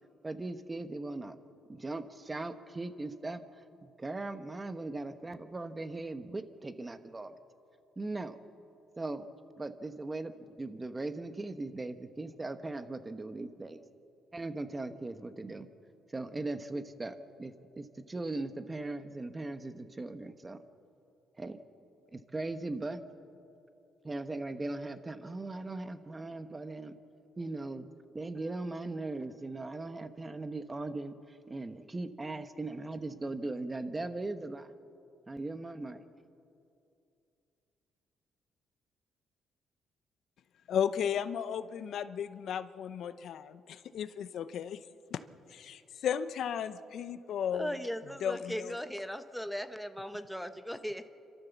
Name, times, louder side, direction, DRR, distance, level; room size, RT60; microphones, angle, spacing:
voice 1, 0.2-1.4 1.7-7.3 8.0-8.4 9.0-9.3 9.6-13.8 14.3-15.7 16.1-20.6 21.4-21.6 22.1-23.0 24.0-27.0 27.4-27.9 28.1-34.7 35.3-36.0, right 2 dB, 20° right, 10 dB, 1.1 m, -39 dB
voice 2, 40.7-44.8 45.1-45.2 45.5-47.7 48.2-48.8, left 8 dB, 70° left, 12 dB, 0.7 m, -34 dB
voice 3, 47.5-51.1, equal, ahead, 10 dB, 1.0 m, -38 dB
29.0 x 13.0 x 7.1 m, 2.6 s
cardioid pair, 105°, 0 cm